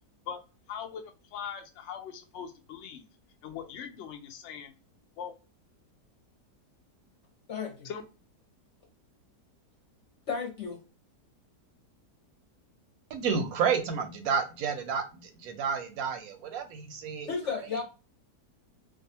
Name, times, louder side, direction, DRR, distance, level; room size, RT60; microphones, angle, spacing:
voice 1, 0.7-1.0 1.3-3.0 3.4-4.7 5.2-5.3 7.8-8.0, left 8 dB, 85° left, 4 dB, 0.6 m, -40 dB
voice 2, 7.5-7.9 10.3-10.8 17.3-17.8, left 5 dB, 55° left, 1 dB, 0.9 m, -33 dB
voice 3, 13.1-17.3, right 6 dB, 70° right, 6 dB, 0.9 m, -30 dB
2.6 x 2.3 x 2.6 m, 0.32 s
omnidirectional pair, 1.8 m